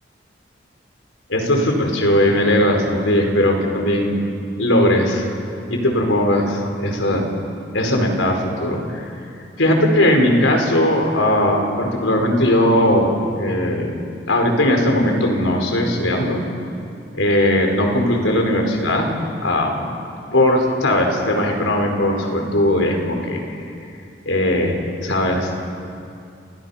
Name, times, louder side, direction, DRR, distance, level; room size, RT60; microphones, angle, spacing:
voice 1, 1.3-4.2 4.6-5.2 5.7-7.3 7.7-9.1 9.6-13.9 14.3-16.4 17.1-19.2 19.4-19.9 20.3-23.4 24.2-25.5, left 1 dB, 90° left, 2 dB, 4.8 m, -18 dB
29.5 x 28.0 x 5.8 m, 2.5 s
head